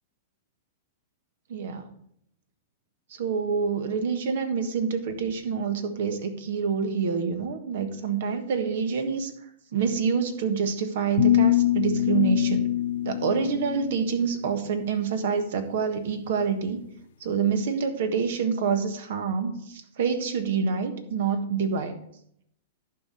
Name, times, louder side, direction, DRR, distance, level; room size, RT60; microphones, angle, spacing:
voice 1, 1.5-1.9 3.1-9.3 9.7-12.7 13.0-16.9 17.2-22.0, right 6 dB, 65° right, 8 dB, 1.4 m, -27 dB
sound 1, 11.2-14.3, left 12 dB, 70° left, 0.6 m, -24 dB
11.0 x 5.0 x 5.4 m, 0.70 s
hypercardioid pair, 115°, 0 cm